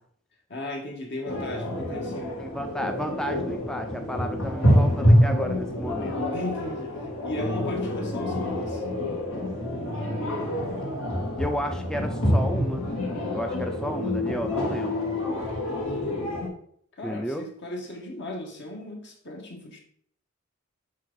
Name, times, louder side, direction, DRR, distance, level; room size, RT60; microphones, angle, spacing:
voice 1, 0.5-2.4 6.3-8.8 13.8-14.2 15.7-16.1 16.9-19.8, left 1 dB, 60° left, 1 dB, 1.6 m, -37 dB
sound 1, 1.3-16.5, left 1 dB, 85° left, 2.7 m, -26 dB
voice 2, 2.4-6.2 11.4-12.9 13.3-15.0 17.0-17.5, equal, 5° left, 5 dB, 0.4 m, -32 dB
9.2 x 3.5 x 3.9 m, 0.62 s
head